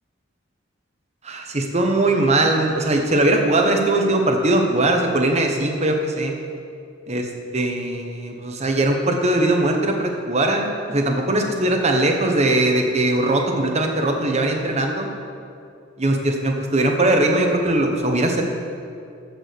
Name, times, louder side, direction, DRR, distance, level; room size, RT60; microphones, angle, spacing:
voice 1, 1.2-6.3 7.1-7.3 7.5-15.1 16.0-18.4, right 2 dB, 35° right, 3 dB, 1.1 m, -20 dB
14.0 x 4.9 x 6.6 m, 2.5 s
head